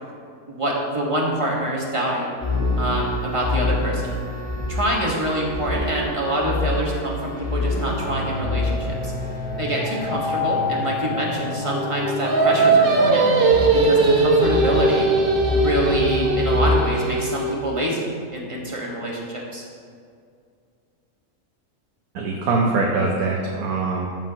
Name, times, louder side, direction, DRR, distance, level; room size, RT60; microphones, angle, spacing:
voice 1, 0.5-2.4 2.8-4.2 4.7-9.1 9.6-13.3 13.7-15.1 15.5-19.6, right 1 dB, 20° right, -3 dB, 1.4 m, -26 dB
sound 1, 2.4-16.8, left 2 dB, 35° left, 1.7 m, -26 dB
Singing, 12.2-17.6, right 3 dB, 45° right, 1.0 m, -19 dB
voice 2, 22.1-24.1, right 3 dB, 80° right, -1 dB, 1.3 m, -22 dB
13.0 x 7.1 x 2.9 m, 2.3 s
omnidirectional pair, 1.5 m